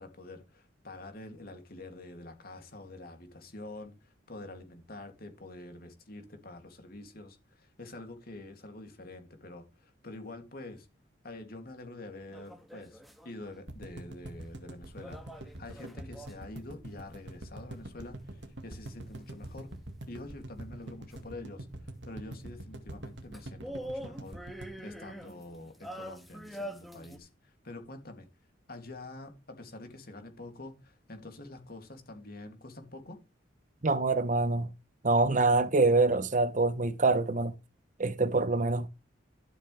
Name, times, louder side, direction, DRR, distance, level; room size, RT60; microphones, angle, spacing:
voice 1, 0.0-10.9 11.2-19.7 20.1-21.7 22.0-28.3 28.7-33.2, left 2 dB, 55° left, 2.8 m, -46 dB
sound 1, 12.3-13.5 15.0-16.6 21.1-21.2 23.3-27.2, equal, ahead, 1.6 m, -44 dB
sound 2, 13.7-25.8 26.1-26.2 26.4-26.5, right 1 dB, 70° right, 2.0 m, -44 dB
voice 2, 33.8-34.7 35.0-37.5 38.0-38.9, right 3 dB, 45° right, 0.8 m, -25 dB
12.5 x 8.2 x 3.4 m
head